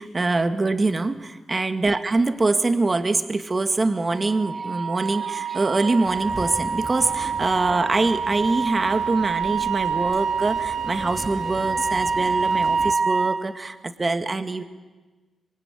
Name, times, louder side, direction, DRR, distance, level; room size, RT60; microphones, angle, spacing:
voice 1, 0.0-14.6, right 3 dB, 30° right, 8 dB, 1.9 m, -24 dB
Wind instrument woodwind instrument, 3.9-13.4, right 5 dB, 65° right, 5.0 m, -26 dB
sound 1, 6.0-12.9, equal, 5° right, 1.9 m, -40 dB
25.5 x 23.5 x 9.9 m, 1.3 s
cardioid pair, 90°, 0 cm